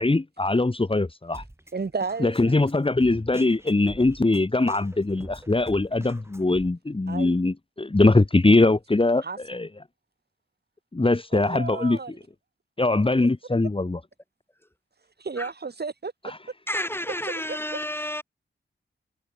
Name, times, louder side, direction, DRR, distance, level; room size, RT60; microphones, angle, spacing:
voice 1, 0.0-1.4 2.2-9.7 10.9-12.0 12.8-14.0 16.2-16.4, left 2 dB, 25° left, 2.5 m, -22 dB
Drum kit, 1.3-6.7, right 1 dB, 15° right, 7.6 m, -45 dB
voice 2, 1.7-2.5 7.1-7.4 9.2-9.4 11.3-12.2 15.2-16.1 17.1-17.6 18.0-18.1, right 4 dB, 55° right, 5.2 m, -33 dB
voice 3, 16.7-18.2, left 1 dB, 10° left, 6.9 m, -30 dB
cardioid pair, 55°, 20 cm